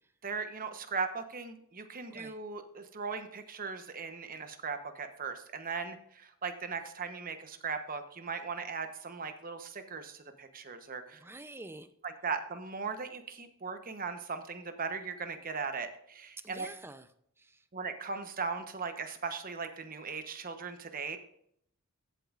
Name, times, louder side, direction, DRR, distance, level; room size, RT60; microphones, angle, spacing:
voice 1, 0.2-11.2 12.0-16.7 17.7-21.2, right 5 dB, 40° right, 8 dB, 1.0 m, -38 dB
voice 2, 11.1-11.9 16.4-17.1 17.4-17.6, right 2 dB, 10° right, 11 dB, 0.6 m, -48 dB
14.5 x 8.1 x 2.5 m, 0.69 s
head